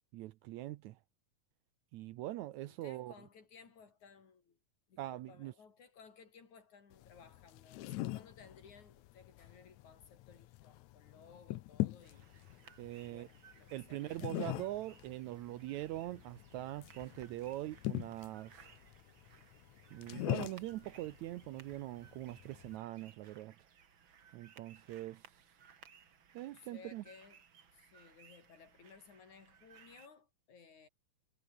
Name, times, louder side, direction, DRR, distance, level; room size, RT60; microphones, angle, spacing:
voice 1, 0.1-1.0 1.9-3.1 5.0-5.5 12.8-13.3 13.7-18.7 19.9-23.5 24.3-25.4 26.3-27.0, right 15 dB, 85° right, 1.6 m, -43 dB
voice 2, 2.7-4.6 4.9-12.3 13.0-14.7 26.4-27.4 27.7-30.9, left 5 dB, 55° left, 5.2 m, -59 dB
sound 1, 6.9-22.8, left 17 dB, 80° left, 1.7 m, -43 dB
sound 2, 12.0-30.1, right 7 dB, 40° right, 2.1 m, -62 dB
omnidirectional pair, 4.2 m